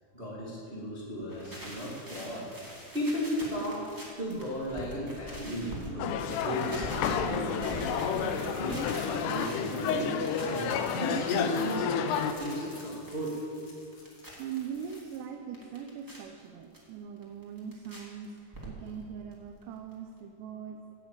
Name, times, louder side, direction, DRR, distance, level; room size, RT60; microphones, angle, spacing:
voice 1, 0.1-2.5 2.9-3.9 4.2-6.1 6.4-7.8 8.1-11.9 12.3-13.3, equal, 60° right, -6 dB, 0.6 m, -35 dB
sound 1, 1.2-5.9 6.2-15.0 15.3-16.2 16.7-16.8 17.2-18.0 18.2-19.0 19.3-19.4 19.6-19.7 19.9-20.0, right 1 dB, 5° right, 1.5 m, -44 dB
sound 2, 6.0-12.3, left 7 dB, 80° left, 2.4 m, -31 dB
sound 3, 7.5-7.8 8.1-15.2, left 3 dB, 45° left, 4.2 m, -54 dB
voice 2, 14.4-18.4 18.7-20.8, right 7 dB, 80° right, 4 dB, 2.7 m, -41 dB
15.5 x 7.7 x 8.8 m, 2.5 s
omnidirectional pair, 5.6 m